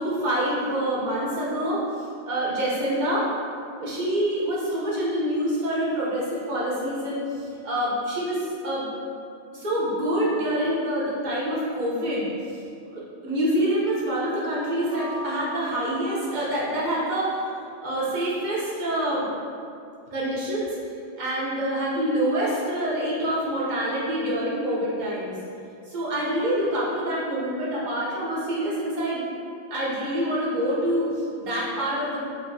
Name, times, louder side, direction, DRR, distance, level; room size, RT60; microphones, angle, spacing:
voice 1, 0.0-1.8 2.2-3.3 3.8-8.9 9.5-12.6 12.9-17.4 17.8-19.3 20.1-20.8 21.2-25.3 25.9-29.2 29.7-32.2, right 1 dB, 45° right, -7 dB, 0.9 m, -26 dB
sound 1, 14.7-17.4, equal, 40° left, 1.2 m, -40 dB
4.1 x 2.7 x 2.6 m, 2.4 s
omnidirectional pair, 1.2 m